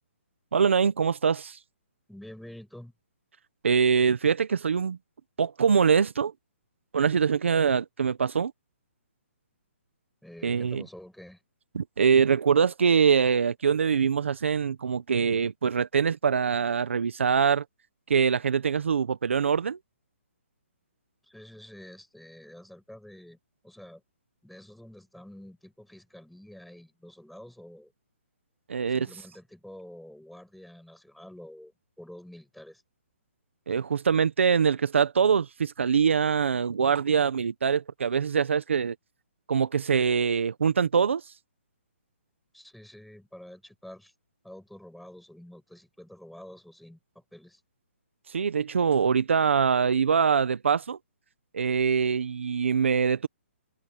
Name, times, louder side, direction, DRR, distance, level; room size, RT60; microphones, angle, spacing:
voice 1, 0.5-1.6 3.6-5.0 5.4-6.3 6.9-8.5 10.4-10.8 11.7-17.6 18.1-19.8 28.7-29.1 33.7-39.0 39.5-41.2 48.3-51.0 51.5-53.3, right 6 dB, 70° right, 1.2 m, -24 dB
voice 2, 2.1-2.9 10.2-11.4 21.2-23.4 23.6-24.0 24.4-27.9 28.8-32.8 42.5-44.1 44.4-47.6, left 1 dB, ahead, 7.0 m, -48 dB
hypercardioid pair, 175°, 7 cm